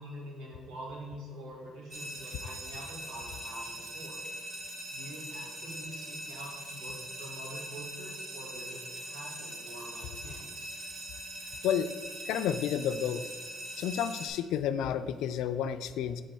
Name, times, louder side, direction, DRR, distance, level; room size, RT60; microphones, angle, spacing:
voice 1, 0.0-4.2 4.9-10.7, right 1 dB, 85° right, -3 dB, 1.8 m, -45 dB
sound 1, 1.9-14.3, right 1 dB, 35° right, 1.1 m, -42 dB
voice 2, 12.3-13.3 13.8-16.2, left 9 dB, 85° left, 11 dB, 0.3 m, -31 dB
6.8 x 3.8 x 4.7 m, 1.4 s
cardioid pair, 175°, 0 cm